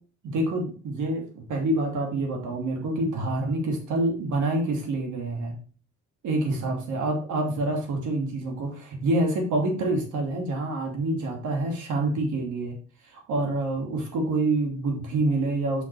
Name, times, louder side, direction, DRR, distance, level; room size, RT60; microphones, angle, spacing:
voice 1, 0.2-5.5 6.2-12.8 13.1-15.8, right 2 dB, 80° right, 2 dB, 2.5 m, -27 dB
5.8 x 5.5 x 4.7 m, 0.39 s
cardioid pair, 90°, 30 cm